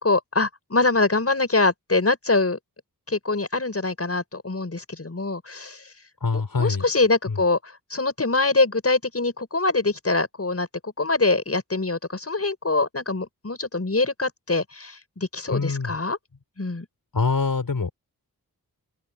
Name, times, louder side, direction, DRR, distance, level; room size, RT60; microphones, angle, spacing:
voice 1, 0.0-2.6 3.1-5.8 6.3-16.2 16.6-16.9, left 3 dB, 40° left, 6.9 m, -24 dB
voice 2, 6.2-6.8 7.3-7.4 15.5-16.0 17.1-17.9, left 4 dB, 65° left, 6.3 m, -24 dB
open air
cardioid pair, 50°, 37 cm